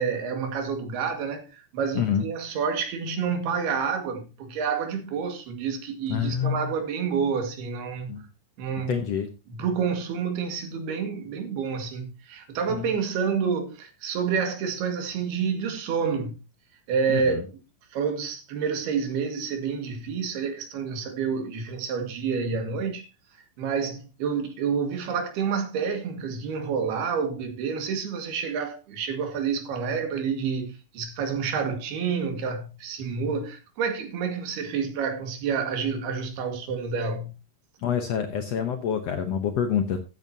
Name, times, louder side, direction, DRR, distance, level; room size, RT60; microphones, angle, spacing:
voice 1, 0.0-8.2 8.6-9.0 9.5-16.4 16.9-17.6 17.9-23.1 23.6-37.3, right 6 dB, 85° right, 4.0 m, -29 dB
voice 2, 6.1-6.7 8.1-8.2 8.9-9.3 12.7-12.9 17.1-17.4 37.8-40.0, left 8 dB, 80° left, 1.4 m, -27 dB
14.0 x 9.3 x 2.8 m
omnidirectional pair, 4.4 m